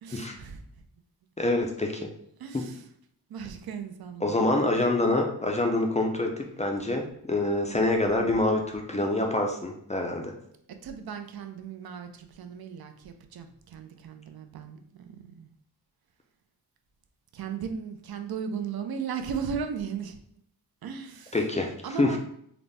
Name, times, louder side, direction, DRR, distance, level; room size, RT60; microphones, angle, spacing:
voice 1, 0.0-0.6 2.4-2.8 3.3-4.4 10.8-15.5 17.3-20.2 20.8-21.4 21.8-22.2, right 6 dB, 75° right, 7 dB, 0.5 m, -36 dB
voice 2, 1.4-2.1 2.5-2.7 4.2-10.3 21.3-22.2, left 2 dB, 20° left, 2 dB, 0.4 m, -26 dB
3.9 x 2.0 x 3.3 m, 0.70 s
wide cardioid pair, 145°, 38 cm